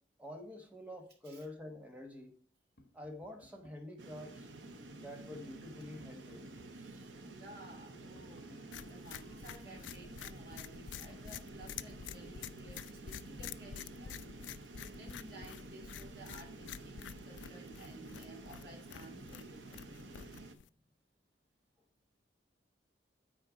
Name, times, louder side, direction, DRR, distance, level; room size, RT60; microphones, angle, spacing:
voice 1, 0.2-2.4 2.9-4.5 4.9-6.5 8.5-8.6, left 1 dB, 10° right, 1.3 m, -48 dB
Tap, 2.8-4.0 5.3-6.9 8.2-9.6 11.1-12.6 14.5-14.6 14.9-17.1 18.7-19.4, left 1 dB, 65° left, 1.3 m, -63 dB
sound 1, 4.0-20.5, right 2 dB, 80° right, 0.9 m, -51 dB
voice 2, 6.7-14.2 14.8-19.6, right 2 dB, 55° right, 2.8 m, -55 dB
sound 2, 8.7-20.7, left 8 dB, 85° left, 0.4 m, -49 dB
9.6 x 4.3 x 4.9 m
head